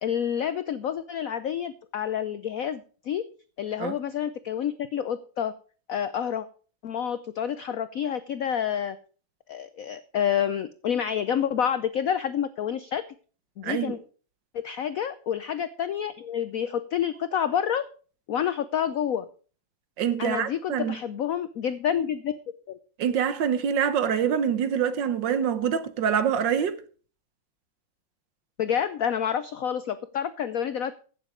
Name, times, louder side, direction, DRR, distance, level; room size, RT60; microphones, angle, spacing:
voice 1, 0.0-3.2 3.6-5.5 5.9-6.5 6.8-9.0 9.5-13.0 13.6-14.0 14.6-17.8 18.3-19.3 20.2-22.4 22.7-22.8 28.6-30.9, left 9 dB, 80° left, 0.7 m, -28 dB
voice 2, 13.6-14.0 20.0-21.0 23.0-26.8, right 8 dB, 65° right, 1.6 m, -25 dB
15.0 x 7.4 x 5.0 m
omnidirectional pair, 2.2 m